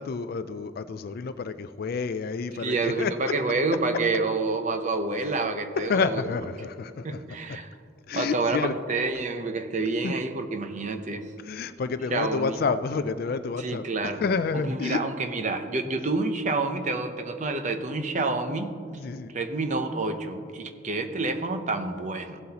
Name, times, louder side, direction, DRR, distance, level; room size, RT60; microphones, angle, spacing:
voice 1, 0.0-3.3 5.8-7.2 7.5-7.6 8.1-8.8 10.0-10.2 11.4-15.0 18.2-18.4 18.9-19.3, left 5 dB, 45° left, 12 dB, 0.3 m, -29 dB
voice 2, 2.6-6.2 7.0-7.7 8.1-11.3 12.1-12.6 13.6-14.2 14.7-18.7 19.3-22.4, right 3 dB, 35° right, 7 dB, 0.6 m, -28 dB
16.0 x 7.7 x 2.9 m, 2.3 s
head